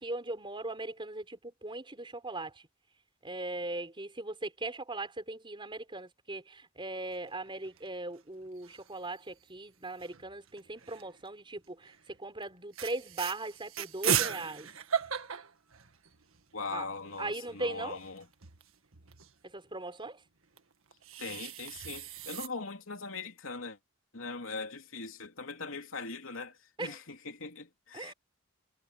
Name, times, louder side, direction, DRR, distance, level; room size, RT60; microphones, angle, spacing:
voice 1, 0.0-2.5 3.2-11.9 12.2-14.7 16.7-16.8 17.2-18.0 19.5-20.2 26.8-27.0 27.9-28.1, right 2 dB, 25° right, 4.3 m, -39 dB
sound 1, 7.1-7.8 8.2-8.3 8.5-9.1 10.0-11.2 11.8-12.0 12.4-12.5 12.7-16.4 16.8-16.9 17.0-19.3 20.6-22.5, right 8 dB, 85° right, 1.7 m, -36 dB
voice 2, 16.5-18.3 21.2-23.8 24.1-28.1, left 4 dB, 75° left, 3.2 m, -41 dB
head